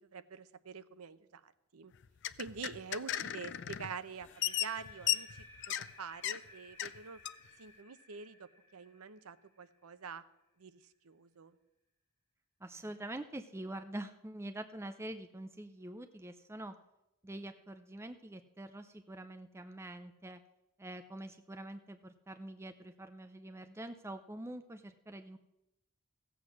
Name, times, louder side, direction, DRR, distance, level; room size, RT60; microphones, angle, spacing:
voice 1, 0.1-1.9 2.4-5.3 5.7-7.2 7.6-10.2 10.6-11.6, right 5 dB, 90° right, 13 dB, 0.7 m, -46 dB
sound 1, 1.9-3.9 4.2-5.9 6.2-6.4 6.8-7.0 7.3-7.4, left 12 dB, 55° left, 0.4 m, -36 dB
sound 2, 4.1-10.1, left 2 dB, 10° left, 2.4 m, -56 dB
voice 2, 12.6-16.7 17.2-20.4 20.8-25.4, right 1 dB, 10° right, 8 dB, 0.5 m, -45 dB
15.5 x 8.0 x 6.2 m, 0.90 s
head